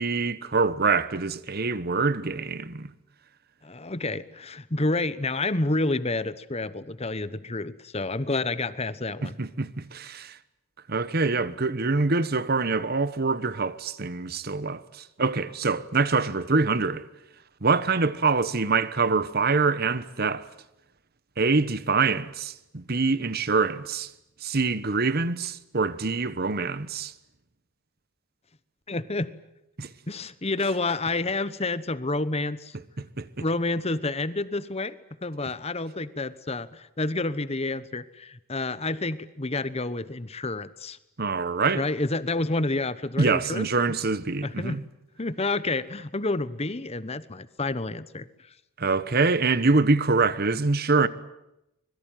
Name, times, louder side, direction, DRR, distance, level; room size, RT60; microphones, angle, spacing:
voice 1, 0.0-2.9 9.2-10.4 10.9-17.0 17.6-20.5 21.4-24.1 24.4-27.1 29.8-29.9 33.0-33.3 41.2-41.8 43.2-44.8 48.8-51.1, right 4 dB, 45° right, 1.1 m, -25 dB
voice 2, 3.6-9.3 28.9-29.3 30.1-32.7 33.4-35.0 35.2-41.0 41.7-43.7 44.4-44.8 45.2-48.3, left 2 dB, 30° left, 1.0 m, -29 dB
25.5 x 22.0 x 9.2 m
head